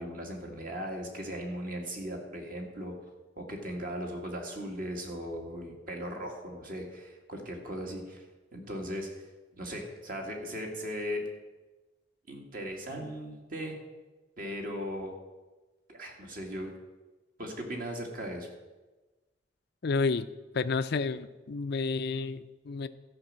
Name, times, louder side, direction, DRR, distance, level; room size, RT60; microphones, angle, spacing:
voice 1, 0.0-2.9 3.4-8.2 8.5-9.2 9.6-11.2 12.3-13.8 14.4-15.1 15.9-16.7 17.4-18.5, equal, 45° right, 1 dB, 1.9 m, -38 dB
voice 2, 19.8-20.3 20.5-22.9, left 4 dB, 55° left, 13 dB, 0.5 m, -30 dB
13.0 x 5.3 x 7.4 m, 1.2 s
head